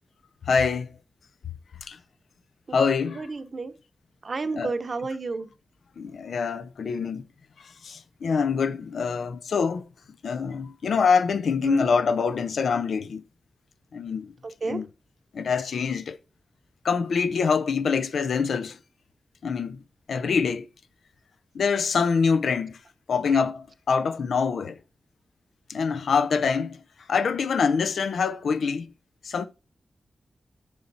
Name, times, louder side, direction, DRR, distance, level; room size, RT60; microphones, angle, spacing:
voice 1, 0.5-0.9 1.8-2.0 2.7-3.3 4.6-4.7 6.0-7.3 7.6-9.8 10.2-13.2 13.9-14.3 14.7-14.9 15.3-16.2 16.8-18.8 19.4-19.8 20.1-20.7 21.5-22.8 23.1-24.8 25.7-26.8 27.1-28.9 29.2-29.5, left 5 dB, 85° left, 0.6 m, -25 dB
voice 2, 3.1-3.7 4.2-5.5 11.6-11.8 14.6-14.8, right 3 dB, 55° right, 0.9 m, -31 dB
7.1 x 6.5 x 4.1 m
cardioid pair, 70°, 0 cm